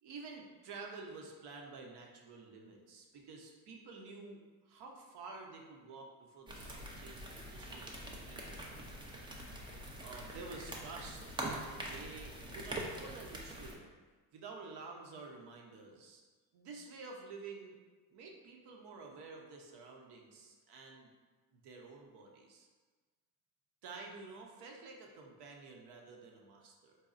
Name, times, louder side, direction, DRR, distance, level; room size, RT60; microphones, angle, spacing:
voice 1, 0.0-8.8 10.0-13.9 14.3-16.2 16.5-17.8 18.1-21.1 21.5-22.7 23.8-27.0, right 4 dB, 55° right, 1 dB, 0.8 m, -50 dB
sound 1, 6.5-13.7, right 1 dB, 10° right, 0.4 m, -44 dB
4.1 x 2.2 x 2.4 m, 1.3 s
supercardioid pair, 80°, 47 cm